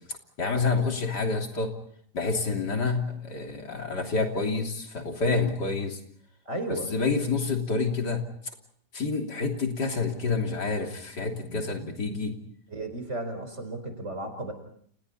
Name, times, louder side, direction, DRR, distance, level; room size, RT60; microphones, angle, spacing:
voice 1, 0.4-1.7 2.1-6.0 6.7-8.2 8.9-12.4, left 4 dB, 80° left, 3 dB, 3.7 m, -28 dB
voice 2, 6.4-6.9 11.2-11.7 12.7-14.5, right 1 dB, 40° right, 8 dB, 5.0 m, -35 dB
30.0 x 30.0 x 4.2 m, 0.63 s
omnidirectional pair, 1.8 m